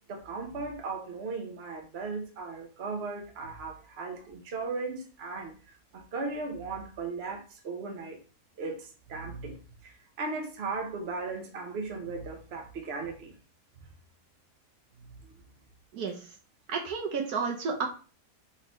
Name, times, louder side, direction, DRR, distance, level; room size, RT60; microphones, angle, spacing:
voice 1, 0.1-8.2 8.6-9.6 9.8-13.3 15.2-15.4, right 3 dB, 45° right, 1.1 m, -37 dB
voice 2, 16.7-17.9, right 5 dB, 75° right, 1.4 m, -31 dB
4.3 x 3.8 x 3.0 m
omnidirectional pair, 1.7 m